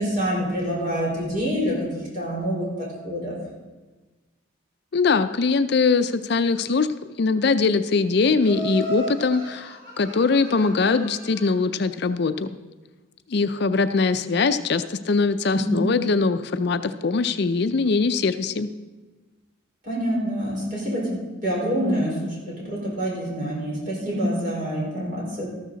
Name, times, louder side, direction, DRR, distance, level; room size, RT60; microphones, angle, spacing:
voice 1, 0.0-3.4 15.5-15.9 19.8-25.5, equal, 40° right, -3 dB, 4.5 m, -26 dB
voice 2, 4.9-6.9 7.2-12.5 13.3-18.7, left 4 dB, 50° left, 10 dB, 0.5 m, -22 dB
Laughter, 8.4-11.6, right 1 dB, 55° right, 4.1 m, -35 dB
13.5 x 13.0 x 4.0 m, 1.2 s
head